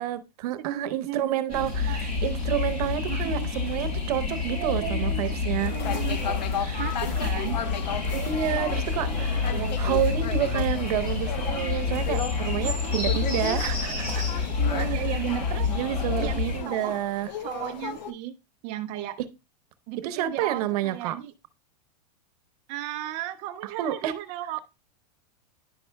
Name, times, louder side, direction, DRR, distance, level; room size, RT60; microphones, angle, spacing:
voice 1, 0.0-5.7 6.7-6.8 8.1-14.5 15.7-17.3 20.0-21.1 23.8-24.1, right 12 dB, 65° right, 0.8 m, -29 dB
voice 2, 0.6-2.0 3.1-3.5 4.5-5.3 5.7-6.2 6.8-7.6 8.5-10.1 12.8-13.0 14.6-15.7 16.2-17.0 17.4-18.3 18.6-19.2 19.9-21.3 22.7-24.6, right 13 dB, 35° right, 0.4 m, -35 dB
sound 1, 1.5-16.6, left 4 dB, 40° left, 4.5 m, -28 dB
sound 2, 5.6-18.1, left 8 dB, 85° left, 0.8 m, -36 dB
10.0 x 5.5 x 2.2 m
supercardioid pair, 145°, 21 cm